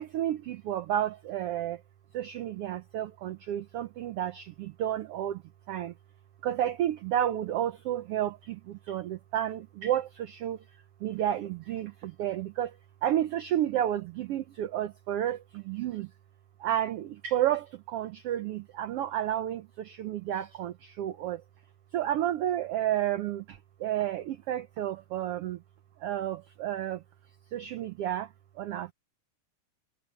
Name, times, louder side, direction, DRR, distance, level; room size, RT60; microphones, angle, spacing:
voice 1, 0.0-1.8 2.1-5.4 5.7-5.9 6.4-8.3 8.9-10.6 11.0-11.9 12.2-12.7 13.0-15.4 15.7-16.1 16.6-17.6 17.9-19.6 20.0-21.4 21.9-23.4 23.8-25.6 26.0-27.0 27.5-28.3 28.6-28.9, right 11 dB, 85° right, 1.3 m, -31 dB
omnidirectional pair, 3.6 m